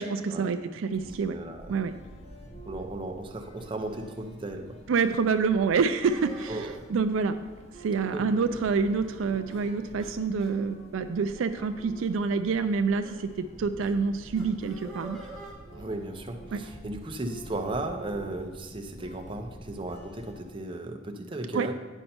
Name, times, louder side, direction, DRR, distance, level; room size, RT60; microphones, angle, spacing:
voice 1, 0.0-1.3 1.7-1.9 4.9-7.4 7.8-15.2 16.5-16.6 21.5-21.7, right 5 dB, 75° right, 9 dB, 0.4 m, -27 dB
sound 1, 0.9-20.5, right 1 dB, 30° left, 0.8 m, -48 dB
voice 2, 1.0-1.7 2.7-4.6 6.5-6.7 8.1-8.2 15.7-21.7, right 2 dB, 25° right, 3 dB, 0.6 m, -35 dB
sound 2, 5.0-5.2 6.0-6.8 7.8-8.2 8.5-8.6 8.9-9.2 9.5-9.6 10.0-10.1 10.4-10.5 11.2-11.4 11.9-12.1 13.0-13.2 13.8-13.9 14.3-15.5, right 1 dB, 5° left, 1.2 m, -46 dB
8.9 x 5.4 x 4.3 m, 1.3 s
head